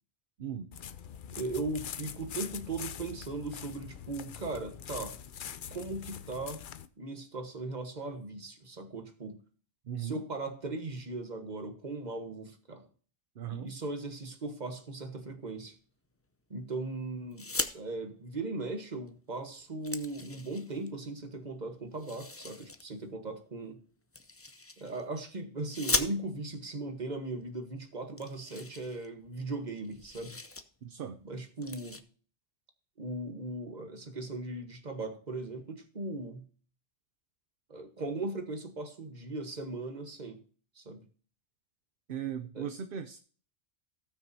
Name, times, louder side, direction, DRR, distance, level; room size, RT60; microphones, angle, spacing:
voice 1, 0.4-0.7 9.8-10.2 13.4-13.7 30.8-31.2 42.1-43.2, right 9 dB, 55° right, 9 dB, 0.8 m, -38 dB
sound 1, 0.7-6.9, left 8 dB, 55° left, 0.7 m, -43 dB
voice 2, 1.3-5.2 5.7-6.6 7.0-9.4 10.0-12.8 13.5-15.7 16.5-17.5 17.7-23.8 24.8-30.4 31.2-32.0 33.0-36.5 37.7-40.4 40.7-41.1 42.5-42.7, right 2 dB, 40° right, 6 dB, 1.4 m, -38 dB
sound 2, 17.3-17.8 19.1-19.2 19.5-20.9 22.0-22.8 24.1-25.1 25.7-26.6 27.4-27.5 27.8-27.9 28.2-29.5 29.8-30.6 31.0-31.2 31.6-32.0, left 3 dB, 20° left, 0.4 m, -37 dB
17.5 x 6.2 x 2.7 m, 0.42 s
omnidirectional pair, 1.2 m